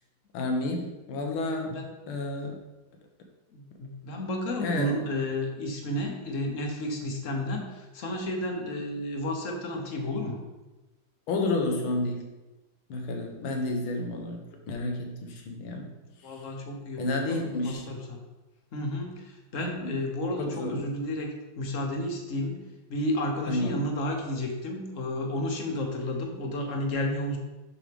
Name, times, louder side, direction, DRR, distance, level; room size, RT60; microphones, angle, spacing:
voice 1, 0.3-1.7 2.1-2.5 4.6-5.0 11.3-12.2 12.9-15.9 16.2-16.4 17.0-17.9 19.6-20.0 20.4-20.9 23.5-23.9, left 2 dB, 90° left, 3 dB, 1.8 m, -31 dB
voice 2, 3.5-10.4 16.2-18.2 18.7-22.6 22.9-27.4, left 1 dB, 50° left, 2 dB, 1.1 m, -32 dB
7.4 x 6.3 x 3.4 m, 1.1 s
omnidirectional pair, 2.2 m